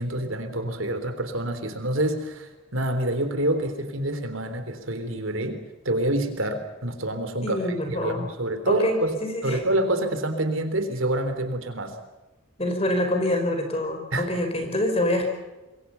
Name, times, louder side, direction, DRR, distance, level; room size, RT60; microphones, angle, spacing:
voice 1, 0.0-5.6 5.8-9.2 9.4-11.9 14.1-14.3, right 1 dB, 75° right, 8 dB, 3.4 m, -27 dB
voice 2, 7.4-8.3 8.7-9.6 12.6-15.3, left 1 dB, 30° left, 5 dB, 5.0 m, -26 dB
26.5 x 23.0 x 5.6 m, 1.1 s
head